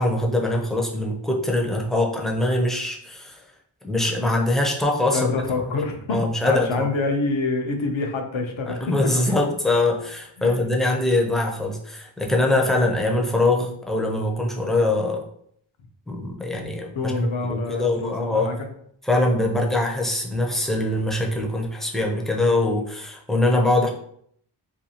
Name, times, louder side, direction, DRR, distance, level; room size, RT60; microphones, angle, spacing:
voice 1, 0.0-3.4 3.8-5.3 6.1-6.7 8.7-15.2 16.1-18.5 19.0-23.9, left 2 dB, ahead, 0 dB, 0.5 m, -23 dB
voice 2, 5.1-8.8 9.2-9.4 10.4-10.6 16.9-18.7, left 3 dB, 70° left, 4 dB, 0.6 m, -27 dB
2.6 x 2.3 x 2.8 m, 0.65 s
wide cardioid pair, 50°, 49 cm